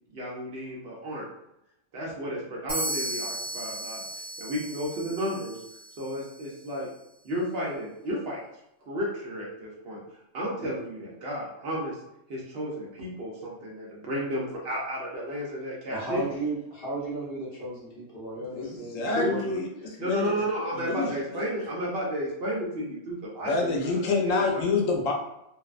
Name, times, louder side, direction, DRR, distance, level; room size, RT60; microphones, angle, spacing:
voice 1, 0.1-1.2 1.9-5.6 6.0-6.9 7.2-8.4 8.8-10.0 10.3-12.0 12.3-16.2 19.2-23.9 24.2-24.7, equal, 60° right, -4 dB, 0.8 m, -32 dB
sound 1, 2.7-6.4, right 2 dB, 25° right, 0.5 m, -35 dB
voice 2, 15.9-19.4, right 2 dB, 55° left, -5 dB, 0.9 m, -34 dB
voice 3, 18.5-19.7 20.0-20.4 20.7-21.5 23.4-25.1, left 3 dB, 90° left, 0 dB, 1.0 m, -27 dB
2.6 x 2.0 x 2.4 m, 0.83 s
omnidirectional pair, 1.3 m